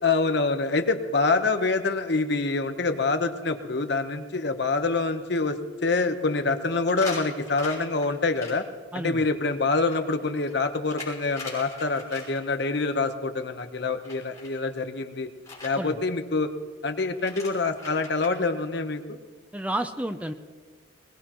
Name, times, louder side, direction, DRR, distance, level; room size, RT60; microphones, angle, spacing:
voice 1, 0.0-8.6 8.9-15.3 15.6-16.5 16.8-19.2, left 3 dB, 55° left, 7 dB, 1.0 m, -26 dB
sound 1, 2.5-2.6 3.1-3.2 3.5-3.6 6.9-8.5 9.7-12.6 14.0-14.6 15.4-15.7 16.9-17.0 17.2-18.5, left 3 dB, 15° left, 6.2 m, -41 dB
voice 2, 8.9-9.2 15.8-16.0 19.5-20.3, right 1 dB, 5° right, 8 dB, 0.5 m, -30 dB
21.5 x 19.5 x 3.0 m, 1.5 s
head